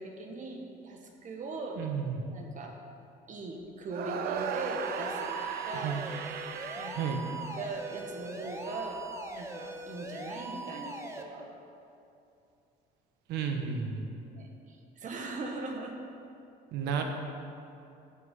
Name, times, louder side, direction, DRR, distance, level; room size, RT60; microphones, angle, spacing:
voice 1, 0.0-1.8 2.3-2.7 3.3-6.1 6.8-7.2 7.6-9.0 9.3-11.5 14.3-15.9, right 3 dB, 50° right, 2 dB, 1.7 m, -40 dB
voice 2, 1.8-2.2 5.7-6.0 6.9-7.2 13.3-14.1 16.7-17.0, right 7 dB, 90° right, 4 dB, 1.2 m, -32 dB
sound 1, 3.9-8.1, right 7 dB, 70° right, 0.6 m, -37 dB
sound 2, 4.4-11.2, right 1 dB, 15° right, 0.9 m, -41 dB
13.5 x 6.2 x 5.5 m, 2.6 s
cardioid pair, 110°, 17 cm